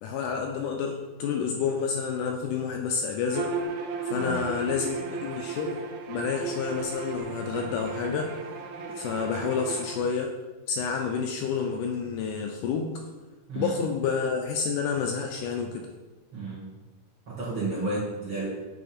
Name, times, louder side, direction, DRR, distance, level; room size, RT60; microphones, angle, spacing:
voice 1, 0.0-3.5 4.0-5.8 6.1-8.6 8.9-10.3 10.7-13.0 13.5-15.9, left 6 dB, 80° left, 2 dB, 1.9 m, -29 dB
Bowed string instrument, 3.3-10.0, right 4 dB, 85° right, 1.7 m, -35 dB
voice 2, 4.1-4.5 13.5-13.8 16.3-16.8 17.3-18.5, right 3 dB, 50° right, -9 dB, 1.6 m, -32 dB
8.5 x 3.4 x 4.2 m, 1.2 s
omnidirectional pair, 4.0 m